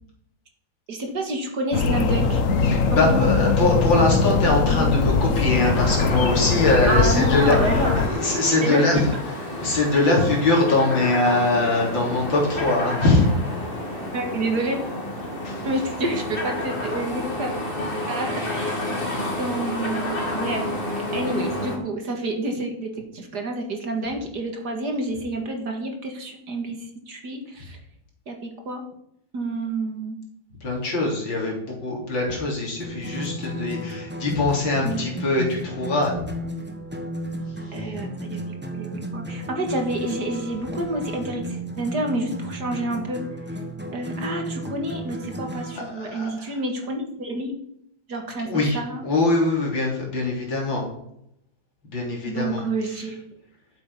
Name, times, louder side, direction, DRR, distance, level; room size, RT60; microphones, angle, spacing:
voice 1, 0.9-2.4 2.9-3.5 6.9-8.0 8.6-9.1 9.9-10.2 14.1-14.8 15.6-17.5 18.1-19.0 19.4-20.7 21.1-27.8 28.3-28.8 29.3-30.2 34.8-35.0 37.7-38.4 38.7-43.2 43.9-47.5 48.1-49.0 52.2-53.2, right 2 dB, 55° right, 3 dB, 2.3 m, -29 dB
sound 1, 1.7-8.1, left 4 dB, 50° left, 1.1 m, -21 dB
voice 2, 2.7-9.0 9.6-13.3 15.4-15.6 30.6-36.2 45.7-46.5 48.4-48.8 49.0-50.9 51.8-52.6, left 2 dB, 65° left, -1 dB, 4.0 m, -22 dB
sound 2, 5.5-21.8, left 1 dB, 25° left, 2.5 m, -30 dB
sound 3, 32.8-45.9, right 1 dB, 10° right, 0.8 m, -33 dB
12.0 x 7.7 x 5.5 m, 0.74 s
omnidirectional pair, 2.2 m